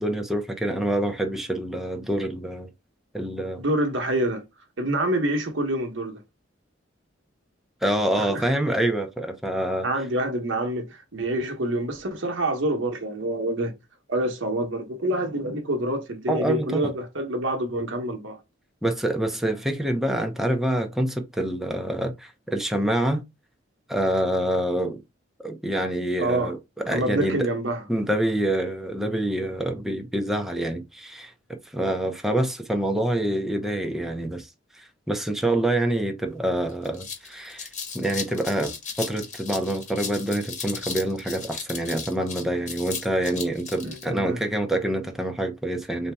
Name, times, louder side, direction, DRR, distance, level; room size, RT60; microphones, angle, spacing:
voice 1, 0.0-2.7 3.1-3.6 7.8-9.9 16.3-16.9 18.8-23.2 23.9-25.0 25.4-26.6 26.9-27.5 27.9-31.3 31.7-34.5 34.8-37.7 37.9-38.7 39.0-46.1, right 1 dB, ahead, 0.6 m, -26 dB
voice 2, 3.6-4.4 4.8-6.2 8.2-8.5 9.8-13.7 14.1-18.4 26.2-26.5 26.9-27.8 43.8-44.4, right 1 dB, 85° right, 1.0 m, -27 dB
sound 1, 36.3-36.4 36.7-44.0, left 5 dB, 40° left, 1.2 m, -36 dB
4.2 x 2.8 x 3.4 m
head